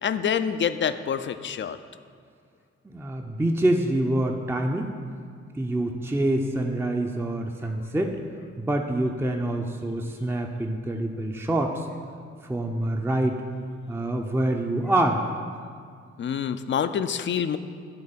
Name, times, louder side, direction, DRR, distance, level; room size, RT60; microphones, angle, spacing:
voice 1, 0.0-1.8 16.2-17.6, left 8 dB, 40° left, 11 dB, 0.4 m, -26 dB
voice 2, 2.8-4.9 5.5-8.2 8.6-11.9 12.5-13.5 13.9-15.2, right 1 dB, 5° right, 3 dB, 0.6 m, -26 dB
9.7 x 3.6 x 5.9 m, 2.1 s
hypercardioid pair, 40°, 31 cm